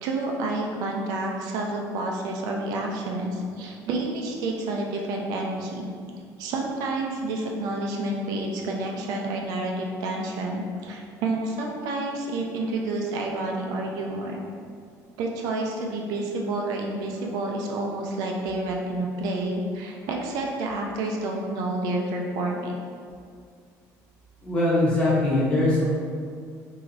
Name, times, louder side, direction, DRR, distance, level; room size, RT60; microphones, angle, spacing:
voice 1, 0.0-5.9 6.4-14.4 15.2-22.7, right 2 dB, 75° right, 0 dB, 0.4 m, -29 dB
voice 2, 24.4-25.9, left 2 dB, 15° left, -7 dB, 0.7 m, -21 dB
3.1 x 2.7 x 2.5 m, 2.2 s
cardioid pair, 160°, 7 cm